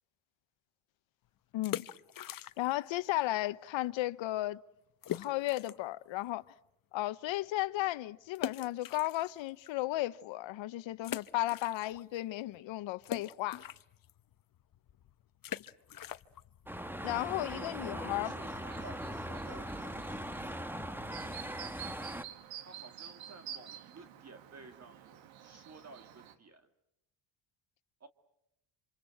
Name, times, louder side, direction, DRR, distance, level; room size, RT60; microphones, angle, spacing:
voice 1, 1.5-1.9 2.6-4.6 5.1-6.4 6.9-13.6 17.0-18.3, left 17 dB, 70° left, 1.1 m, -34 dB
sound 1, 1.5-2.9 3.1-3.2 3.8-3.9 4.2-4.3 5.0-5.9 6.4-6.5 8.3-9.7 10.2-10.3 11.0-12.2 12.5-18.0, left 11 dB, 45° left, 1.0 m, -43 dB
sound 2, 16.7-22.2, equal, 5° right, 1.3 m, -40 dB
voice 2, 17.5-20.1 22.6-26.7 28.0-28.1, right 3 dB, 35° right, 2.2 m, -53 dB
Chirp tweet, 18.4-26.4, right 10 dB, 70° right, 2.2 m, -50 dB
27.0 x 27.0 x 7.8 m
cardioid pair, 100°, 47 cm